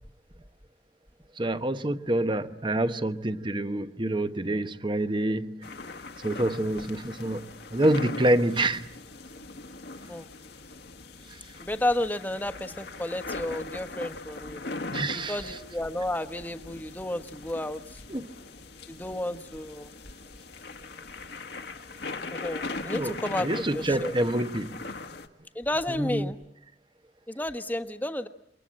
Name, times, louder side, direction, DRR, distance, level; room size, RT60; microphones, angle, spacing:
voice 1, 1.3-5.7 6.2-8.9 11.3-11.5 14.9-15.6 18.1-18.3 22.9-24.9 25.9-26.3, right 1 dB, 30° right, 1.1 m, -27 dB
sound 1, 5.6-25.3, left 3 dB, 65° left, 1.7 m, -40 dB
voice 2, 11.6-14.6 15.1-18.0 18.9-19.9 22.3-23.5 23.7-24.1 25.5-26.4 27.3-28.3, left 1 dB, 10° left, 1.3 m, -32 dB
28.0 x 24.0 x 8.8 m
head